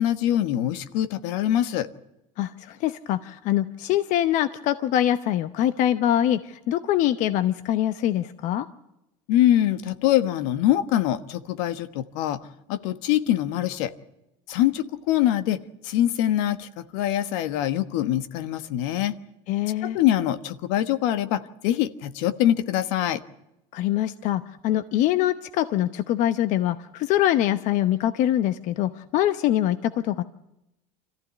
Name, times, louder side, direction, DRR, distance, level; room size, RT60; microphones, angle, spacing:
voice 1, 0.0-1.9 9.3-12.4 12.7-13.9 14.5-15.6 15.8-19.1 19.8-23.2, left 12 dB, 75° left, 1.3 m, -24 dB
voice 2, 2.4-8.7 19.5-20.0 23.7-30.2, left 12 dB, 55° left, 0.9 m, -24 dB
26.0 x 14.5 x 9.6 m
supercardioid pair, 130°, 15 cm